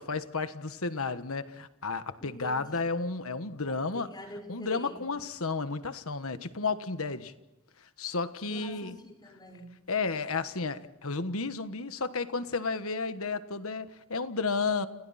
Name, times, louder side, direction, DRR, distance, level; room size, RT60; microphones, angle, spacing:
voice 1, 0.0-4.1 4.5-7.3 8.0-9.0 9.9-14.9, left 4 dB, 65° left, 11 dB, 1.4 m, -32 dB
voice 2, 2.2-2.6 3.9-5.1 8.5-9.7, equal, 20° left, 0 dB, 4.9 m, -46 dB
30.0 x 30.0 x 4.3 m, 1.0 s
head